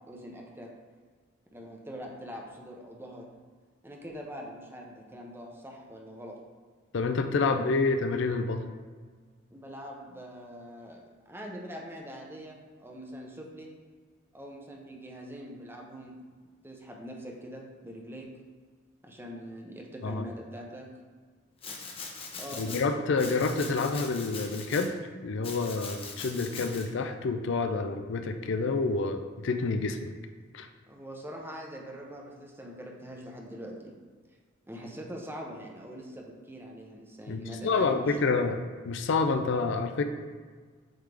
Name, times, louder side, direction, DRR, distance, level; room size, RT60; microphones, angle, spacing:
voice 1, 0.1-0.7 1.5-3.3 3.8-6.4 7.5-7.8 9.5-13.7 14.3-16.2 16.6-18.3 19.0-20.9 22.4-23.0 30.9-33.9 34.7-38.5, equal, 10° right, 0 dB, 0.8 m, -43 dB
voice 2, 6.9-8.6 20.0-20.2 22.6-24.9 25.2-30.1 30.5-30.7 37.3-40.0, left 4 dB, 65° left, 7 dB, 0.5 m, -28 dB
Domestic sounds home sounds, 21.6-22.8 23.2-24.9 25.4-26.9, left 4 dB, 30° left, 0.8 m, -41 dB
8.0 x 3.7 x 3.4 m, 1.5 s
head